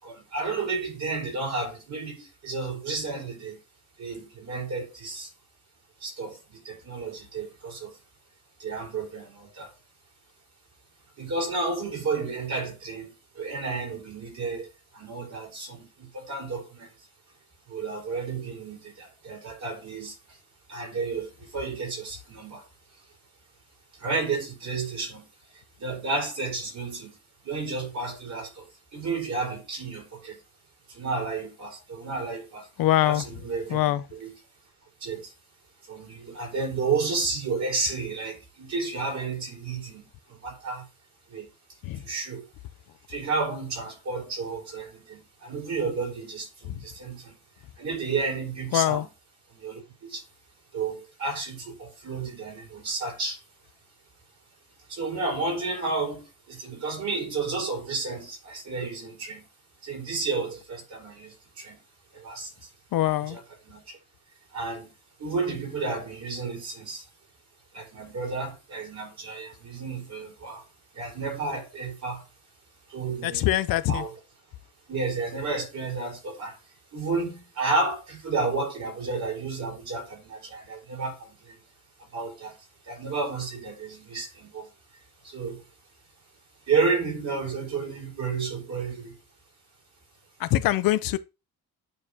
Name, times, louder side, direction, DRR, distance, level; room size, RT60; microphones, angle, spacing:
voice 1, 0.0-3.6 4.0-5.3 6.0-8.0 8.6-9.7 11.2-14.7 14.9-16.9 17.7-20.4 20.7-22.7 23.9-25.3 25.5-27.2 27.4-30.4 30.9-32.7 33.0-34.4 35.0-35.3 35.9-40.9 41.3-41.5 41.9-42.5 43.1-47.3 47.8-49.1 49.5-50.2 50.7-53.4 54.9-59.5 59.8-61.8 62.1-62.7 63.0-64.0 64.5-64.9 65.2-67.1 67.7-70.7 70.9-72.2 72.9-73.5 73.9-74.2 74.9-76.6 76.9-81.6 82.0-84.7 85.2-85.6 86.7-89.2, right 4 dB, 50° right, 4.3 m, -32 dB
voice 2, 32.8-33.2 33.7-34.0 41.9-42.0 48.7-49.0 62.9-63.4 73.2-74.0 90.4-91.2, left 14 dB, 75° left, 0.7 m, -23 dB
8.9 x 4.8 x 2.8 m
cardioid pair, 130°, 35 cm